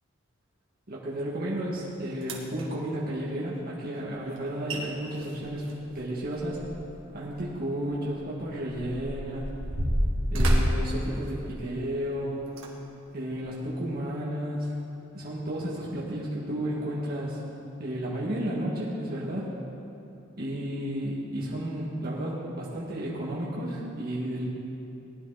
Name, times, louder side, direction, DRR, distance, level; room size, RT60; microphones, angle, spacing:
voice 1, 0.9-5.7 5.9-6.6 7.1-9.5 10.3-12.5 13.1-14.7 15.1-17.4 17.8-19.5 20.4-24.5, right 1 dB, 50° right, -6 dB, 2.1 m, -32 dB
sound 1, 1.7-1.8 2.2-2.6 4.4-4.5 4.7-4.8 5.1-6.9 7.3-7.4 8.1-11.9 12.5-12.7 13.3-13.4, equal, 75° right, 2.0 m, -28 dB
19.0 x 11.0 x 4.2 m, 2.8 s
head